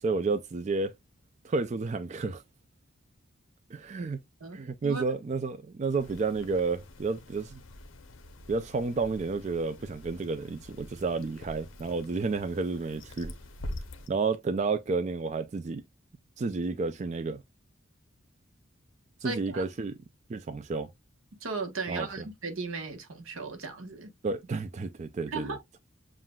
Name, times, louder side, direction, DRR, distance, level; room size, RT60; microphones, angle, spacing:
voice 1, 0.0-0.9 1.4-2.4 3.7-4.2 4.5-7.6 8.5-13.3 14.1-15.8 16.4-17.4 19.2-20.0 20.3-20.9 21.9-22.1 24.2-25.6, right 4 dB, 35° right, 0.3 m, -31 dB
voice 2, 4.4-5.0 19.2-19.6 21.4-24.1 25.3-25.6, right 4 dB, 85° right, 1.1 m, -36 dB
sound 1, 6.0-14.1, left 1 dB, 70° left, 0.7 m, -45 dB
7.3 x 2.5 x 2.2 m
head